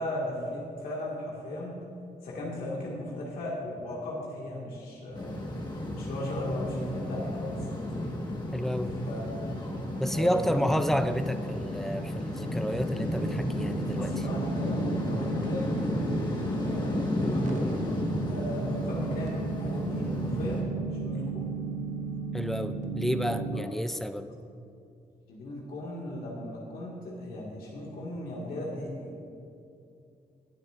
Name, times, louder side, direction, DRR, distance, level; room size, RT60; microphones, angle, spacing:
voice 1, 0.0-1.8 2.2-5.4 5.9-8.1 9.1-9.3 10.1-10.8 14.0-17.9 18.3-20.6 20.9-21.4 23.5-23.6 25.3-29.3, left 1 dB, 85° left, -4 dB, 1.9 m, -37 dB
sound 1, 5.1-20.6, left 1 dB, 30° left, 1.4 m, -32 dB
voice 2, 8.5-9.0 10.0-14.2 22.3-24.3, equal, ahead, 9 dB, 0.3 m, -30 dB
sound 2, 13.0-23.6, right 5 dB, 55° right, 1.0 m, -36 dB
20.0 x 7.9 x 2.5 m, 2.6 s
wide cardioid pair, 160°, 15 cm